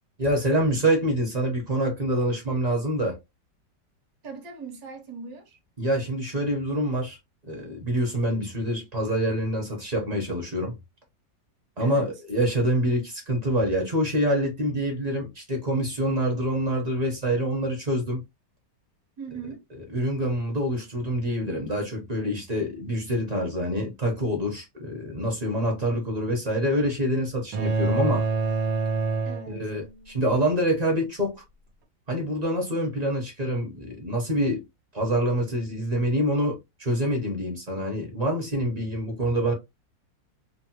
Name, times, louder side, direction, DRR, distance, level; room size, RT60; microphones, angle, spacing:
voice 1, 0.2-3.2 5.8-7.2 7.5-10.8 11.8-18.2 19.9-28.2 29.5-31.4 32.1-34.6 34.9-39.5, equal, 35° right, 0.7 m, -26 dB
voice 2, 4.2-5.6 11.8-12.1 19.2-19.6 29.2-29.7, right 5 dB, 60° right, 1.2 m, -40 dB
sound 1, 27.5-30.1, right 4 dB, 85° right, 1.4 m, -26 dB
3.1 x 2.1 x 2.8 m
omnidirectional pair, 1.9 m